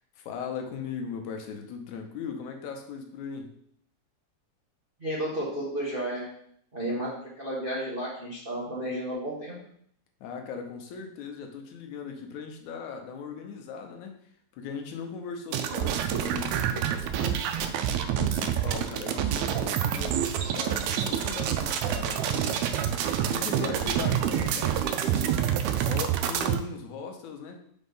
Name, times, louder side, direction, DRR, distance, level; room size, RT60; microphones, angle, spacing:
voice 1, 0.2-3.5 10.2-14.2 14.5-17.5 17.9-22.6 23.3-24.8 25.8-27.6, left 5 dB, 80° left, 4 dB, 2.2 m, -38 dB
voice 2, 5.0-6.3 6.7-9.6, right 1 dB, 50° right, -5 dB, 0.6 m, -32 dB
sound 1, 15.5-26.6, right 9 dB, 80° right, 1.8 m, -27 dB
5.2 x 4.5 x 5.4 m, 0.67 s
omnidirectional pair, 3.4 m